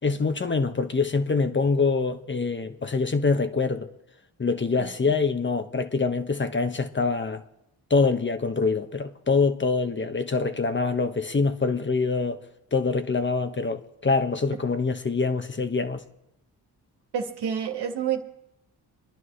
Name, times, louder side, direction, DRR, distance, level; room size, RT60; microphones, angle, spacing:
voice 1, 0.0-3.9 4.4-7.4 7.9-12.4 12.7-16.0, left 4 dB, 30° left, 1.2 m, -25 dB
voice 2, 17.1-18.2, right 8 dB, 75° right, 1.9 m, -28 dB
25.0 x 10.5 x 3.3 m
supercardioid pair, 60°, 40 cm